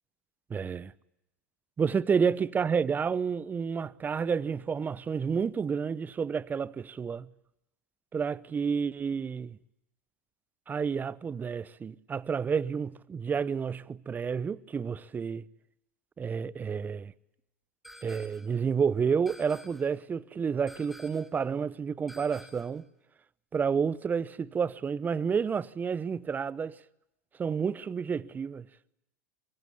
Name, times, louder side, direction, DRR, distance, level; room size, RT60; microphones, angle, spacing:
voice 1, 0.5-0.9 1.8-7.3 8.1-9.6 10.7-15.4 16.2-17.1 18.0-22.8 23.5-26.8 27.4-28.7, right 6 dB, 20° right, 0.9 m, -30 dB
sound 1, 17.8-18.6 19.3-20.0 20.7-21.4 22.1-22.8, equal, ahead, 2.7 m, -51 dB
24.0 x 23.0 x 8.5 m
hypercardioid pair, 95°, 9 cm